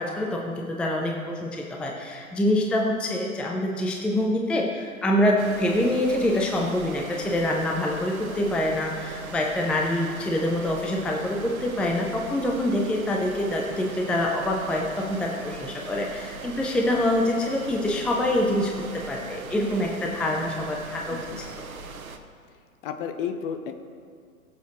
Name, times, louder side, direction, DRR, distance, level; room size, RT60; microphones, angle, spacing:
voice 1, 0.0-21.4, left 1 dB, 5° left, 0 dB, 0.6 m, -25 dB
sound 1, 5.4-22.2, right 4 dB, 75° right, 1.2 m, -40 dB
voice 2, 21.1-21.4 22.8-23.7, left 7 dB, 40° left, 7 dB, 1.0 m, -32 dB
21.5 x 7.4 x 3.1 m, 2.1 s
figure-of-eight pair, 110°, 42 cm